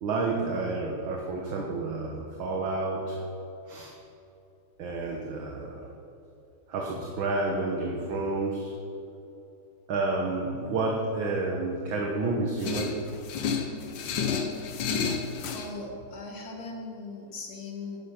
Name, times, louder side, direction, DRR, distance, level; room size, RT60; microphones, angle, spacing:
voice 1, 0.0-3.2 3.7-3.9 4.8-5.9 6.7-8.7 9.9-13.0, right 3 dB, 65° right, -1 dB, 1.9 m, -30 dB
sound 1, 12.6-15.7, left 5 dB, 65° left, 1.5 m, -30 dB
voice 2, 15.5-18.0, left 3 dB, 45° left, 1 dB, 2.2 m, -39 dB
12.0 x 10.0 x 6.0 m, 2.8 s
omnidirectional pair, 2.4 m